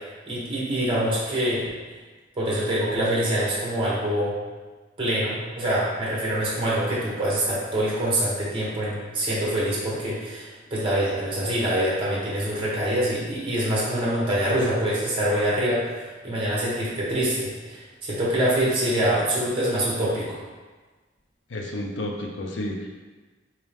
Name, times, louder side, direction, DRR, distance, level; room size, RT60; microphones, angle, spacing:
voice 1, 0.3-1.7 2.3-4.3 5.0-20.4, right 1 dB, 30° right, -6 dB, 1.0 m, -25 dB
voice 2, 21.5-22.9, left 1 dB, 80° left, 1 dB, 0.6 m, -31 dB
3.5 x 2.8 x 3.4 m, 1.3 s
head